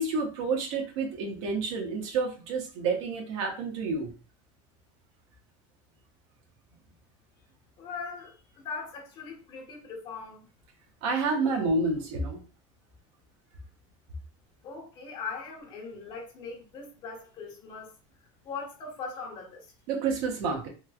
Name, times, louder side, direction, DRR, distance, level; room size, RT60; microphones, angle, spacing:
voice 1, 0.0-4.1 11.0-12.4 19.9-20.7, right 3 dB, 65° right, 1.0 m, -29 dB
voice 2, 7.8-10.5 14.6-17.9 18.4-19.7, left 4 dB, 30° left, 1.1 m, -40 dB
3.2 x 3.0 x 2.3 m
cardioid pair, 180°, 16 cm